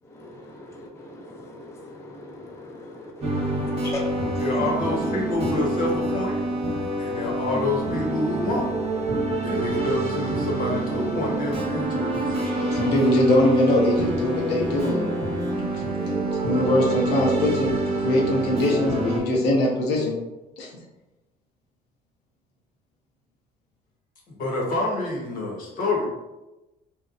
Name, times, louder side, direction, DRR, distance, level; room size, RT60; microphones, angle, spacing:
voice 1, 0.0-4.6 5.0-5.1, left 2 dB, 15° left, -1 dB, 0.4 m, -39 dB
sound 1, 3.2-19.2, right 2 dB, 35° right, 0.8 m, -26 dB
voice 2, 4.4-6.4 7.0-8.7 9.4-12.5 24.3-26.0, left 2 dB, 55° left, -2 dB, 0.9 m, -27 dB
voice 3, 12.5-15.1 16.1-17.7 18.0-20.1 20.6-20.7, left 1 dB, 85° left, -3 dB, 0.6 m, -22 dB
2.8 x 2.1 x 2.4 m, 1.0 s
cardioid pair, 110°, 17 cm